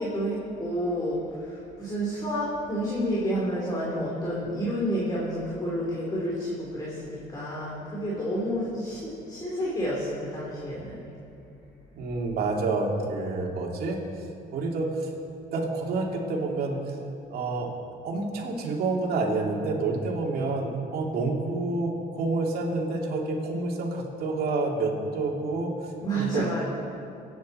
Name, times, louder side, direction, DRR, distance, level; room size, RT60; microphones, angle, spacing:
voice 1, 0.0-11.0 26.0-26.6, equal, 25° left, -6 dB, 3.3 m, -30 dB
voice 2, 11.9-15.1 15.5-17.0 17.3-17.7 18.0-26.4, right 3 dB, 65° right, -1 dB, 2.6 m, -28 dB
23.5 x 9.6 x 4.3 m, 2.7 s
cardioid pair, 110°, 17 cm